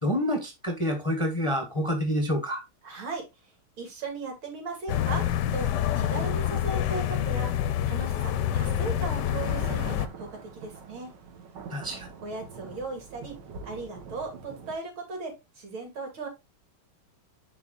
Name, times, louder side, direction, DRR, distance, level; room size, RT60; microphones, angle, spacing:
voice 1, 0.0-2.6 11.7-12.1, equal, 20° left, 0.9 m, -28 dB
voice 2, 2.8-3.2 3.8-5.2 5.5-5.7 6.0-7.5 7.8-10.3 10.5-11.1 12.2-13.3 13.6-16.3, right 3 dB, 75° right, 3.4 m, -37 dB
sound 1, 4.9-10.1, left 10 dB, 70° left, 1.1 m, -27 dB
sound 2, 7.4-7.5 8.3-14.7, right 5 dB, 60° right, 1.7 m, -43 dB
10.5 x 4.4 x 2.4 m
omnidirectional pair, 2.3 m